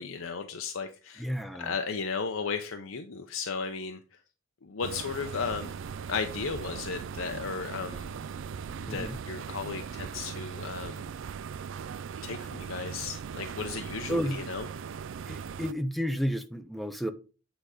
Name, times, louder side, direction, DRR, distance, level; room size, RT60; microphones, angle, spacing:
voice 1, 0.0-1.2 1.6-4.0 4.6-5.7 6.1-8.1 8.8-11.1 12.2-14.7, left 5 dB, 85° left, 0.7 m, -35 dB
voice 2, 1.2-1.7 8.8-9.2 14.1-14.4 15.3-17.1, equal, ahead, 0.6 m, -31 dB
sound 1, 4.8-15.7, right 6 dB, 70° right, 0.4 m, -39 dB
8.8 x 4.0 x 4.9 m
head